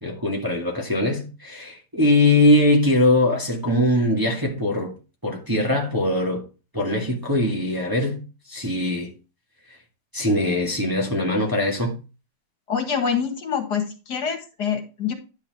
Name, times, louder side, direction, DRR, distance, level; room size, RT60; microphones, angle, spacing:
voice 1, 0.0-4.9 5.2-6.5 6.7-9.1 10.1-12.0, left 1 dB, 10° right, 1.6 m, -21 dB
voice 2, 12.7-15.1, left 7 dB, 65° left, 2.4 m, -26 dB
10.5 x 4.9 x 4.7 m
omnidirectional pair, 1.9 m